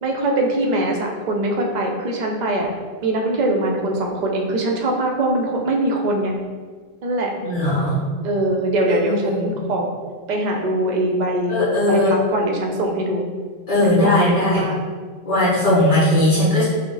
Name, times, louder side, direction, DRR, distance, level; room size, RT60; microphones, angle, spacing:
voice 1, 0.0-2.7 3.0-6.3 7.0-7.3 8.2-9.9 10.3-13.2 13.8-14.8 16.2-16.4, right 1 dB, 50° right, 1 dB, 0.6 m, -22 dB
voice 2, 7.4-8.0 8.9-9.5 11.5-12.1 13.7-14.6 15.2-16.6, left 1 dB, 30° left, -13 dB, 1.5 m, -18 dB
4.7 x 2.0 x 3.9 m, 1.5 s
omnidirectional pair, 1.1 m